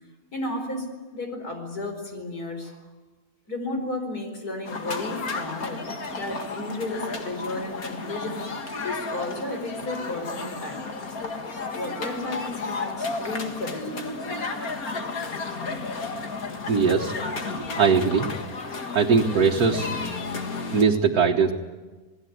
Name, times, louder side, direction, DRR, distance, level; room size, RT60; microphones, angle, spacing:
voice 1, 0.3-0.9 1.1-2.8 3.5-5.8 6.1-8.6 8.8-10.8 11.7-13.9 15.0-15.5, left 2 dB, 85° left, 4 dB, 5.1 m, -33 dB
sound 1, 4.6-20.8, left 3 dB, 70° left, 2.4 m, -33 dB
voice 2, 16.7-17.1 17.8-18.3 18.9-19.9 20.7-21.5, right 5 dB, 80° right, 0 dB, 1.9 m, -20 dB
28.0 x 19.5 x 9.4 m, 1.2 s
omnidirectional pair, 1.6 m